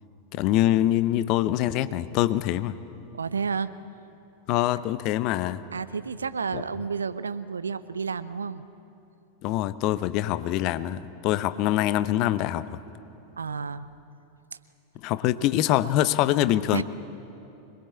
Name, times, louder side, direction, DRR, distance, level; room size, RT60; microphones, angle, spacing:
voice 1, 0.3-2.7 4.5-5.6 6.5-6.6 9.4-12.6 15.0-16.8, left 14 dB, 40° left, 14 dB, 0.8 m, -24 dB
voice 2, 3.1-3.7 5.7-8.6 13.4-13.9 16.7-16.8, right 5 dB, 75° right, 14 dB, 0.8 m, -30 dB
25.5 x 21.5 x 8.3 m, 2.9 s
figure-of-eight pair, 90°, 0 cm